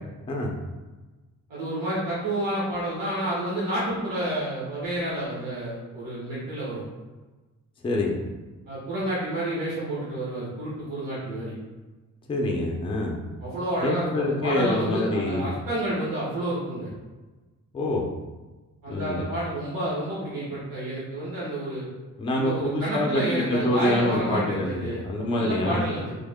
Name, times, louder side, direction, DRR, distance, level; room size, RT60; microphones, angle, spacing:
voice 1, 1.5-6.8 8.7-11.5 13.4-16.9 18.8-21.9 22.3-26.2, right 1 dB, 90° right, -8 dB, 1.2 m, -30 dB
voice 2, 7.8-8.2 12.3-13.2 13.8-15.5 17.7-18.1 18.9-19.2 22.2-25.8, left 1 dB, 15° left, -1 dB, 0.4 m, -26 dB
3.5 x 2.1 x 3.5 m, 1.2 s
wide cardioid pair, 160°, 32 cm